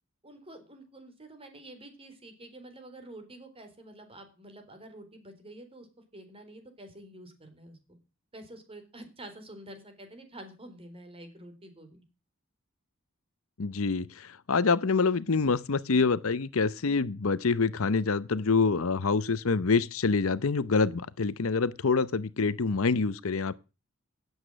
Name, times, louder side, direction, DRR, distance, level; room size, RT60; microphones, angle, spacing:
voice 1, 0.2-5.9 6.1-8.0 8.3-12.0, right 1 dB, 25° right, 4.0 m, -48 dB
voice 2, 13.6-23.6, left 4 dB, 70° left, 0.7 m, -26 dB
16.5 x 8.2 x 6.3 m
head